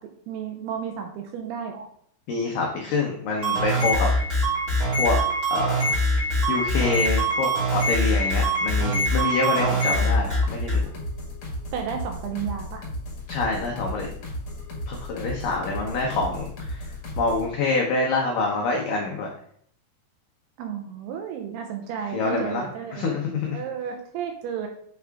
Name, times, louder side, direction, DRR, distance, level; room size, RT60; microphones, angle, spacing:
voice 1, 0.0-1.9 11.7-12.9 20.6-24.7, right 7 dB, 80° right, 3 dB, 2.4 m, -33 dB
voice 2, 2.3-4.1 5.0-5.2 5.5-6.0 6.5-10.9 13.3-14.1 14.9-16.9 17.2-19.3 22.1-22.7 22.9-23.6, left 3 dB, 85° left, -1 dB, 1.9 m, -26 dB
sound 1, 3.4-10.8, equal, 20° right, 2.5 m, -23 dB
sound 2, 10.0-17.5, equal, 50° left, 1.6 m, -35 dB
7.7 x 4.7 x 3.5 m, 0.63 s
omnidirectional pair, 5.1 m